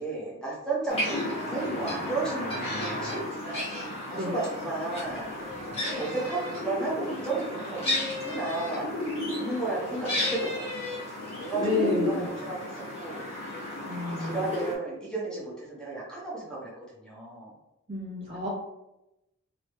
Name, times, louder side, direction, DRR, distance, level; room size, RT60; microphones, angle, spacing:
voice 1, 0.0-3.6 4.1-5.3 5.8-8.9 9.3-10.6 11.4-13.2 14.0-17.5, right 3 dB, 5° left, -6 dB, 1.0 m, -33 dB
sound 1, 0.9-14.7, left 1 dB, 25° left, 1.3 m, -33 dB
voice 2, 11.6-12.3 13.9-14.4 17.9-18.5, left 3 dB, 25° right, -4 dB, 0.5 m, -30 dB
3.0 x 2.9 x 3.1 m, 0.91 s
head